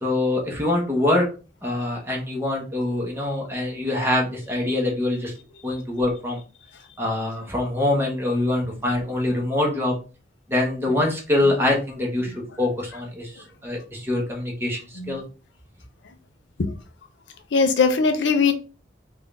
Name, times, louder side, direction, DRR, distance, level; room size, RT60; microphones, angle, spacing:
voice 1, 0.0-1.3 1.6-5.3 5.6-6.4 7.0-9.9 10.5-12.3 12.6-13.3 13.6-15.2, left 1 dB, 15° right, -1 dB, 1.1 m, -24 dB
voice 2, 17.5-18.5, left 4 dB, 80° left, 7 dB, 0.5 m, -20 dB
3.7 x 2.5 x 3.4 m, 0.34 s
head